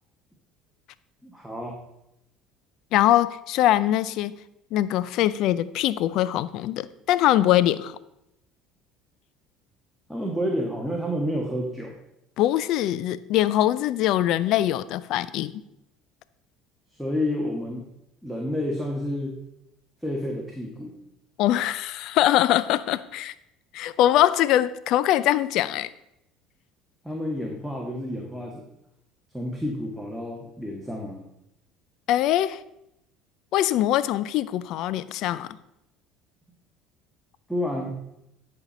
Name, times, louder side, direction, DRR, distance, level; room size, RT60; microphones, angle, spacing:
voice 1, 1.2-1.8 10.1-11.9 17.0-17.8 18.2-19.3 20.0-21.0 27.0-28.6 29.3-31.3 37.5-37.9, left 1 dB, ahead, 0 dB, 1.5 m, -29 dB
voice 2, 2.9-4.3 4.7-8.0 12.4-15.6 21.4-23.3 23.7-25.9 32.1-32.6 33.5-35.6, left 13 dB, 65° left, 16 dB, 0.4 m, -22 dB
10.5 x 4.5 x 5.2 m, 0.84 s
supercardioid pair, 85°, 0 cm